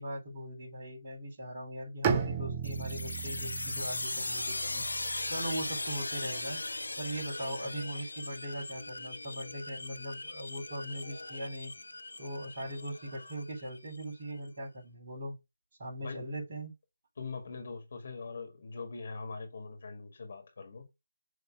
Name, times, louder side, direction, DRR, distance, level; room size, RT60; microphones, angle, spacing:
voice 1, 0.0-4.8 5.3-6.6 7.0-11.7 12.2-15.4 15.8-16.7, equal, 35° right, 3.7 m, -40 dB
Bowed string instrument, 2.0-6.0, right 6 dB, 20° right, 0.7 m, -35 dB
sound 1, 2.6-14.0, left 2 dB, 75° left, 0.7 m, -39 dB
voice 2, 17.2-20.9, left 4 dB, 50° left, 2.0 m, -42 dB
7.0 x 3.1 x 6.0 m
figure-of-eight pair, 155°, 0 cm